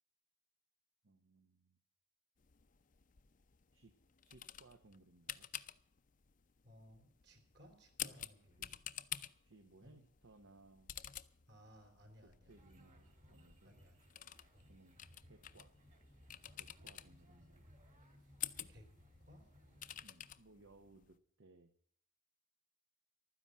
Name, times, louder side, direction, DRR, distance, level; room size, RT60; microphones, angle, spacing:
voice 1, 1.0-1.8 3.7-3.9 4.2-5.5 8.1-8.2 8.6-8.7 9.4-10.9 12.2-13.8 14.7-15.0 15.2-15.7 16.5-17.7 20.0-21.7, right 2 dB, 75° right, 7 dB, 1.0 m, -64 dB
sound 1, 2.4-21.2, left 11 dB, 40° left, 0.5 m, -51 dB
voice 2, 6.6-8.8 9.8-10.0 11.5-12.6 13.6-14.0 14.5-14.7 18.2-18.3 18.7-18.9 19.3-19.4, equal, 55° right, 5 dB, 3.8 m, -62 dB
sound 2, 12.5-20.1, equal, 35° right, 2.4 m, -64 dB
12.5 x 10.0 x 7.4 m, 0.62 s
head